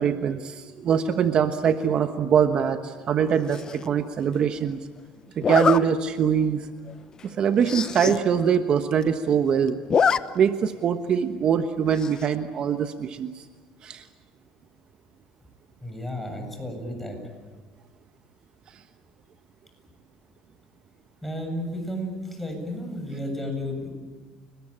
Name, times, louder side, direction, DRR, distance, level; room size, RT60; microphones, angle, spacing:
voice 1, 0.0-4.8 5.4-6.6 7.2-9.8 10.3-13.3 13.8-14.0, right 7 dB, 45° right, 8 dB, 1.2 m, -23 dB
Zipper (clothing), 3.5-3.9 5.4-5.8 6.4-6.5 6.9-7.0 7.2-7.3 7.6-8.2 8.5-8.6 8.8-9.4 9.7-10.2 10.5-10.6 12.0-12.3, left 7 dB, 35° left, 0.9 m, -24 dB
voice 2, 15.8-17.2 21.2-23.9, left 1 dB, 5° left, 3 dB, 7.6 m, -32 dB
30.0 x 20.5 x 8.9 m, 1.4 s
cardioid pair, 115°, 2 cm